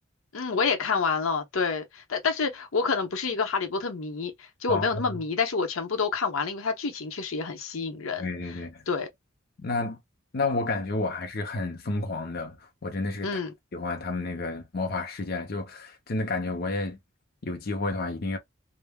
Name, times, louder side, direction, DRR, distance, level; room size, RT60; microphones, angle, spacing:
voice 1, 0.3-8.3 8.9-9.1 13.2-13.5, left 5 dB, 85° left, 0.8 m, -28 dB
voice 2, 8.2-8.8 9.6-10.0 10.3-13.4 13.7-17.0 17.4-18.4, left 3 dB, 50° left, 0.6 m, -30 dB
3.4 x 2.1 x 2.2 m
head